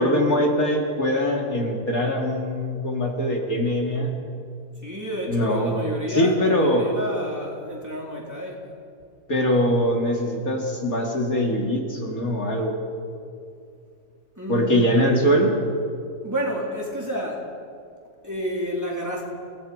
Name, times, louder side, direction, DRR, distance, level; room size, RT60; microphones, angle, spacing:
voice 1, 0.0-4.2 5.3-5.7 6.1-6.9 9.3-12.7 14.5-15.6, equal, 55° left, 0 dB, 3.0 m, -22 dB
voice 2, 4.8-8.6 14.4-15.1 16.2-17.5 18.2-19.2, equal, 10° right, -3 dB, 3.6 m, -30 dB
28.0 x 19.0 x 5.2 m, 2.3 s
omnidirectional pair, 1.8 m